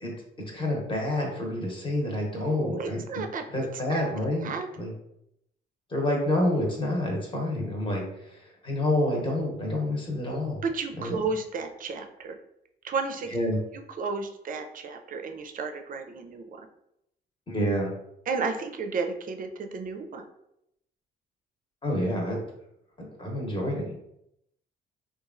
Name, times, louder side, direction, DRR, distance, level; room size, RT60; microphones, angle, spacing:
voice 1, 0.5-3.0 3.5-4.5 4.8-4.9 5.9-10.6 11.0-11.1 13.3-13.6 17.5-17.9 21.8-22.4 23.0-23.9, left 1 dB, 25° left, -1 dB, 0.9 m, -28 dB
voice 2, 2.3-3.4 3.9-4.7 10.6-12.4 12.8-13.3 14.0-16.7 18.3-20.2, right 4 dB, 45° right, 5 dB, 0.4 m, -33 dB
2.9 x 2.3 x 2.4 m, 0.79 s
cardioid pair, 90°, 20 cm